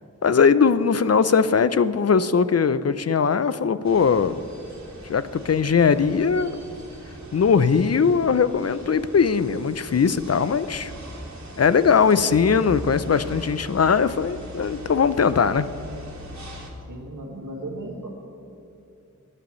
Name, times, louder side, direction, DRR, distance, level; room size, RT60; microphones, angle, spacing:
voice 1, 0.2-4.4 5.1-6.6 7.3-10.9 11.6-15.7, left 6 dB, 50° left, 14 dB, 0.5 m, -20 dB
sound 1, 3.8-16.7, equal, 60° right, 2.2 m, -40 dB
voice 2, 11.9-12.3 16.9-18.1, right 1 dB, 80° right, -1 dB, 1.9 m, -37 dB
20.5 x 9.8 x 3.1 m, 2.6 s
wide cardioid pair, 55°, 31 cm